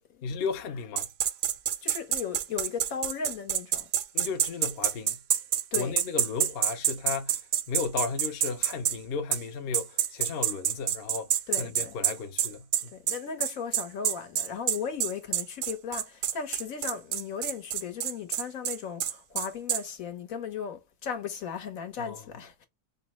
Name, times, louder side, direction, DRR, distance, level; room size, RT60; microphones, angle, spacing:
voice 1, 0.2-1.1 4.1-5.2 5.8-11.3 11.6-13.0 22.0-22.2, left 5 dB, 55° left, 0.8 m, -34 dB
sound 1, 1.0-9.0 9.3-9.4 9.7-19.8, right 10 dB, 65° right, 0.6 m, -27 dB
voice 2, 1.8-3.9 5.7-6.0 11.5-11.9 12.9-22.7, left 7 dB, 75° left, 1.4 m, -36 dB
5.2 x 2.1 x 3.0 m
omnidirectional pair, 1.5 m